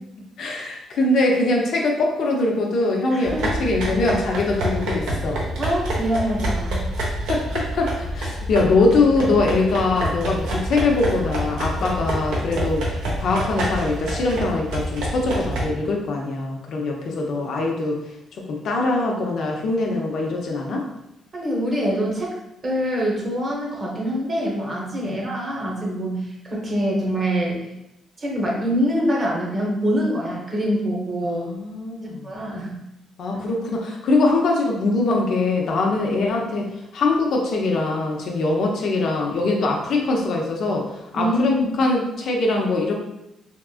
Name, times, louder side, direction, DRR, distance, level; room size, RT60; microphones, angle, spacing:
voice 1, 0.4-5.4 7.3-18.0 18.5-20.9 25.0-25.1 31.2-32.3 33.2-42.9, left 2 dB, 70° left, 0 dB, 0.6 m, -22 dB
voice 2, 3.1-3.6 5.6-6.9 21.3-22.4 22.6-27.6 28.2-31.5 32.0-32.8 35.9-36.0 41.1-41.7, equal, 40° right, -2 dB, 0.9 m, -24 dB
sound 1, 3.2-15.6, right 1 dB, 90° right, 0.7 m, -27 dB
3.5 x 2.4 x 2.4 m, 0.87 s
cardioid pair, 90°, 0 cm